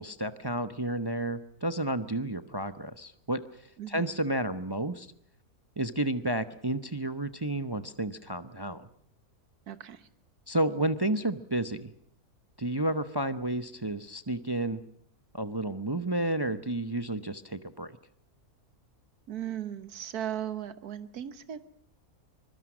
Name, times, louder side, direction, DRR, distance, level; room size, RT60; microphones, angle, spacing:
voice 1, 0.0-3.4 3.9-5.1 5.8-8.9 10.5-11.9 12.6-14.8 15.3-17.9, right 1 dB, 20° right, 12 dB, 0.8 m, -31 dB
voice 2, 3.8-4.2 9.7-10.1 19.3-21.6, right 10 dB, 90° right, 13 dB, 1.7 m, -37 dB
25.0 x 22.0 x 6.2 m, 0.69 s
omnidirectional pair, 1.6 m